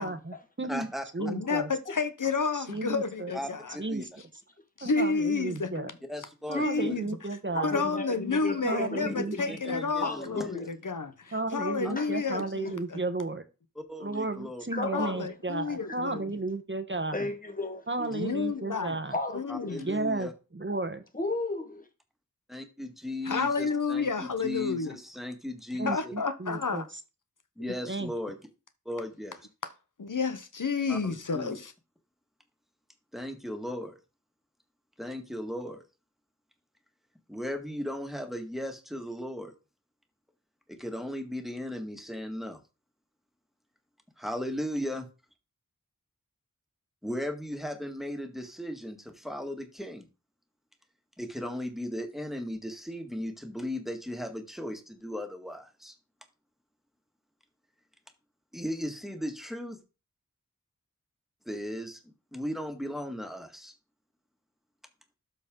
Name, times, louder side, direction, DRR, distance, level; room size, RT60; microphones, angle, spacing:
voice 1, 0.0-0.9 1.1-1.7 2.5-3.3 3.8-4.0 4.8-5.9 6.5-7.8 8.6-9.9 11.3-13.4 14.0-17.3 17.9-19.1 19.8-21.0 25.8-26.8 27.9-28.1, right 2 dB, 35° right, 1.0 m, -33 dB
voice 2, 0.7-1.0 1.5-1.6 3.3-4.0 6.1-7.0 9.2-10.5 11.8-11.9 13.8-14.6 15.1-15.2 19.5-20.3 22.5-26.1 27.6-28.3 28.9-29.4 30.9-31.6 33.1-34.0 35.0-35.8 37.3-39.6 40.7-42.6 44.2-45.1 47.0-50.1 51.2-55.9 58.5-59.8 61.5-62.0 62.3-63.7, left 1 dB, ahead, 1.7 m, -36 dB
voice 3, 1.2-3.8 4.8-5.9 6.5-7.0 7.6-13.0 14.9-16.3 18.1-19.0 19.3-19.9 23.2-25.0 25.8-26.9 30.0-31.7, left 4 dB, 75° left, 0.8 m, -30 dB
voice 4, 7.5-9.6 10.0-10.7 12.0-12.1 14.7-15.3 15.9-16.0 17.1-18.2 19.1-19.8 21.1-21.9, left 2 dB, 25° left, 1.6 m, -34 dB
12.5 x 4.2 x 3.7 m
wide cardioid pair, 50°, 32 cm